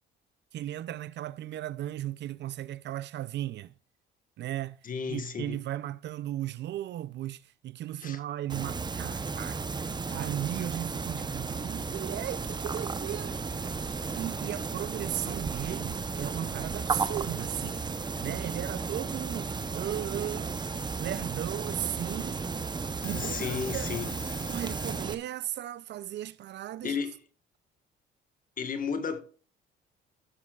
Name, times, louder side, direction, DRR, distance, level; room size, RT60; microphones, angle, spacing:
voice 1, 0.5-3.7 4.4-4.8 5.1-9.6 10.1-13.8 14.2-17.9 18.2-20.6 21.0-22.4 23.0-23.9 24.5-26.9, right 13 dB, 55° right, 0.4 m, -36 dB
voice 2, 4.8-5.6 8.0-8.2 23.1-24.2 26.8-27.2 28.6-29.2, left 6 dB, 40° left, 1.5 m, -33 dB
sound 1, 8.5-25.1, right 4 dB, 20° right, 0.7 m, -34 dB
Alarm / Clock, 13.4-14.2 15.3-15.4 15.6-16.4 17.6-18.2 19.6-19.7 20.5-20.9 21.3-21.4 21.8-22.0 22.5-22.6 22.9-25.0, left 7 dB, 65° left, 2.8 m, -46 dB
15.5 x 7.4 x 2.4 m
cardioid pair, 95°, 21 cm